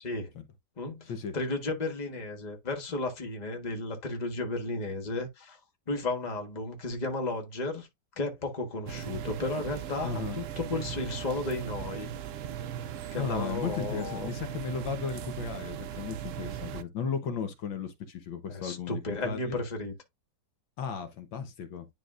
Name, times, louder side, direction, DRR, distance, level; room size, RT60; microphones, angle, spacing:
voice 1, 0.8-5.6 5.9-7.9 8.2-12.1 13.1-14.3 18.5-19.9, left 2 dB, 25° left, 1.4 m, -33 dB
sound 1, 8.9-16.8, right 10 dB, 80° right, 0.7 m, -38 dB
voice 2, 10.0-10.4 13.2-19.6 20.8-21.9, left 6 dB, 80° left, 1.8 m, -35 dB
10.5 x 3.9 x 2.5 m
omnidirectional pair, 2.1 m